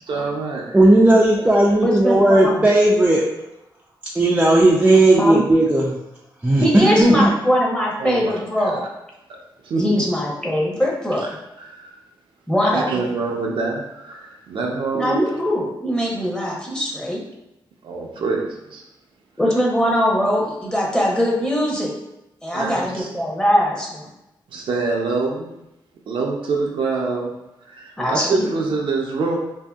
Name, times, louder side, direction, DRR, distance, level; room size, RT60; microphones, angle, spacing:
voice 1, 0.1-0.8 6.8-6.9 8.0-8.8 9.6-9.8 11.1-11.2 11.6-11.9 12.7-15.2 17.8-18.8 22.5-23.1 24.5-25.5 26.1-27.3 27.7-29.4, right 4 dB, 70° right, -1 dB, 0.5 m, -25 dB
voice 2, 0.7-3.2 4.1-5.9 6.4-7.3, right 1 dB, 15° right, -4 dB, 0.4 m, -15 dB
voice 3, 1.8-2.7 5.2-5.4 6.6-8.8 9.8-11.2 12.5-13.0 14.9-17.2 19.4-21.9 22.4-24.1 28.0-28.5, equal, 10° left, -3 dB, 0.8 m, -21 dB
2.7 x 2.6 x 2.3 m, 0.90 s
cardioid pair, 75°, 9 cm